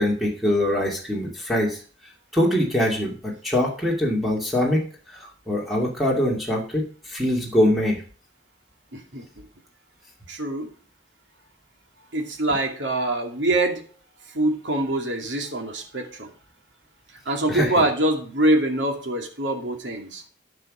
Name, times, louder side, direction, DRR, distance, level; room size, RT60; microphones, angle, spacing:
voice 1, 0.0-1.8 2.3-8.0 17.5-17.7, left 1 dB, ahead, -2 dB, 2.6 m, -23 dB
voice 2, 8.9-9.2 10.3-10.7 12.1-13.8 14.3-16.3 17.3-20.2, right 1 dB, 80° right, 3 dB, 2.5 m, -24 dB
13.0 x 6.1 x 5.1 m, 0.41 s
head